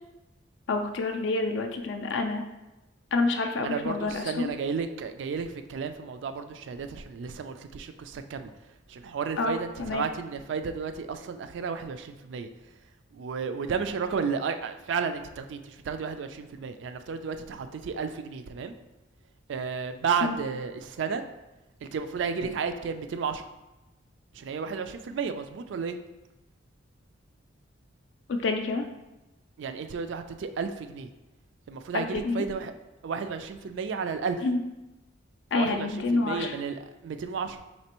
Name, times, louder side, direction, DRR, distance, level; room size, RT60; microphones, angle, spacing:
voice 1, 0.7-2.4 3.1-4.5 9.4-10.1 20.2-20.4 28.3-28.9 31.9-32.4 34.4-34.6 35.5-36.6, left 3 dB, 70° left, 5 dB, 0.4 m, -28 dB
voice 2, 3.6-8.5 8.9-12.5 13.1-18.7 19.5-21.2 21.8-23.4 24.3-26.0 29.6-31.1 31.7-32.7 33.0-34.4 35.5-37.6, right 5 dB, 75° right, 8 dB, 0.3 m, -32 dB
4.2 x 3.3 x 2.9 m, 1.0 s
head